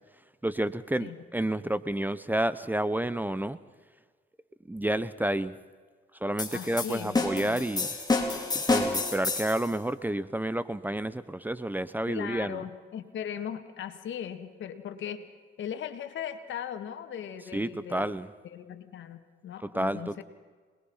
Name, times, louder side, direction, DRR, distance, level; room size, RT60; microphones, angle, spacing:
voice 1, 0.4-3.6 4.7-5.6 6.2-7.9 8.5-12.6 17.5-18.3 19.6-20.2, right 1 dB, 10° right, 15 dB, 0.8 m, -30 dB
sound 1, 6.4-9.7, left 3 dB, 20° left, 4.1 m, -29 dB
voice 2, 6.5-7.6 12.1-15.3 15.6-18.1 18.5-20.2, left 9 dB, 70° left, 8 dB, 2.1 m, -38 dB
27.0 x 21.0 x 5.7 m, 1.5 s
cardioid pair, 90°, 20 cm